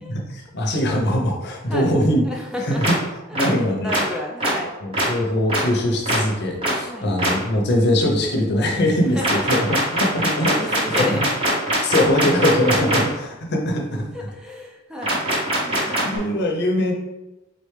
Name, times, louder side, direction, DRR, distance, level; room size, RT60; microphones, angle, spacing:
voice 1, 0.1-2.2 2.6-3.0 3.3-3.9 4.8-9.7 10.0-11.0 11.8-14.3 15.8-16.9, left 1 dB, 55° left, 1 dB, 0.7 m, -22 dB
voice 2, 2.3-2.9 3.5-4.7 6.9-7.1 9.1-9.8 10.6-11.2 12.4-12.5 14.1-15.2 15.6-16.1, left 1 dB, 5° right, 0 dB, 0.4 m, -31 dB
sound 1, 2.8-2.9 3.3-3.5 3.9-4.0 4.4-4.5 4.9-5.0 5.5-5.6 6.1-6.2 6.6-6.7 7.2-7.3 9.2-13.0 15.0-16.2, right 1 dB, 30° right, 1.2 m, -21 dB
4.0 x 3.2 x 3.2 m, 1.0 s
head